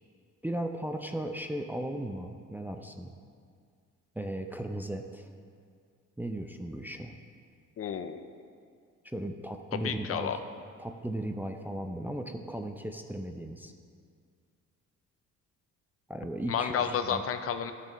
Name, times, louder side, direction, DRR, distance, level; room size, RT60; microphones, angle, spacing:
voice 1, 0.4-3.1 4.2-5.3 6.2-7.1 9.0-10.4 10.8-13.7 16.1-17.2, right 1 dB, 5° right, 4 dB, 0.5 m, -36 dB
voice 2, 7.8-8.3 9.7-10.4 16.5-17.7, left 8 dB, 50° left, 9 dB, 0.5 m, -31 dB
12.0 x 6.8 x 3.0 m, 2.2 s
cardioid pair, 90°, 30 cm